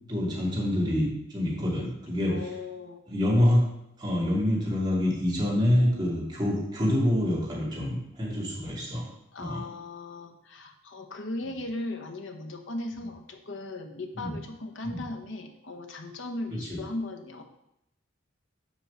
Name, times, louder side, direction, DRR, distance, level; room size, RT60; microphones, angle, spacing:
voice 1, 0.1-2.3 3.1-3.6 4.0-9.0 9.4-9.6 14.2-14.3 14.8-15.0 16.7-16.8, left 1 dB, 20° right, -5 dB, 2.7 m, -26 dB
voice 2, 1.8-3.0 9.3-17.4, left 2 dB, 65° left, 5 dB, 1.1 m, -37 dB
7.5 x 4.7 x 6.8 m, 0.80 s
head